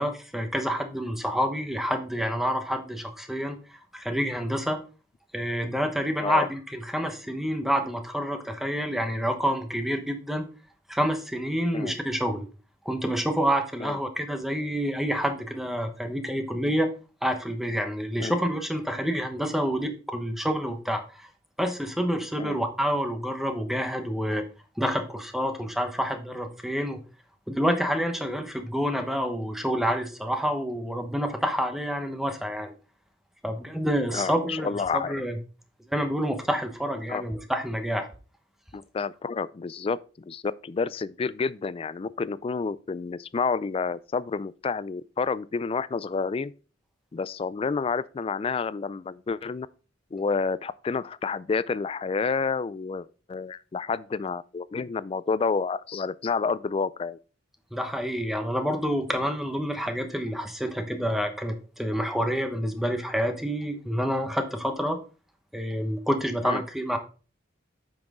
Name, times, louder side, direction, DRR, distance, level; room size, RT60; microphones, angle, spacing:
voice 1, 0.0-4.8 5.3-10.5 10.9-12.5 12.8-16.9 17.2-21.3 21.6-24.4 24.8-27.0 27.5-32.7 33.4-35.4 35.9-38.1 57.7-65.0 65.5-67.0, equal, ahead, 0.9 m, -28 dB
voice 2, 34.1-35.2 37.1-37.2 38.7-46.5 47.1-49.7 50.1-57.2 66.4-66.6, left 5 dB, 30° left, 0.3 m, -29 dB
8.7 x 6.1 x 3.6 m
head